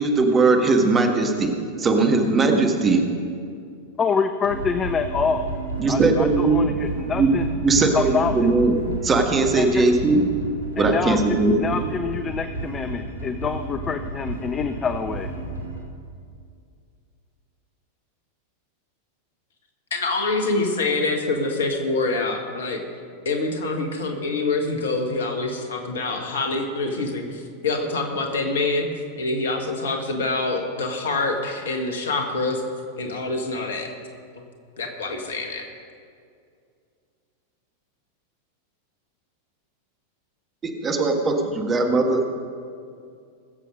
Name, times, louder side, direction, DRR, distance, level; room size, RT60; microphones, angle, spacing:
voice 1, 0.0-1.5 1.8-3.0 5.8-6.7 7.1-7.3 7.6-8.7 9.0-10.2 10.8-11.8 40.8-42.2, right 3 dB, 20° right, 3 dB, 1.6 m, -19 dB
voice 2, 4.0-5.5 5.9-7.4 7.9-8.5 9.6-9.8 10.8-15.3, left 5 dB, 20° left, 9 dB, 0.5 m, -26 dB
sound 1, 4.4-15.8, right 2 dB, 80° left, 2.8 m, -32 dB
voice 3, 19.9-22.8 23.3-28.9 29.2-32.6 33.0-33.9 34.4-34.5 34.8-35.7, left 3 dB, 65° left, 4 dB, 1.8 m, -25 dB
20.5 x 7.5 x 5.2 m, 2.3 s
figure-of-eight pair, 90°, 0 cm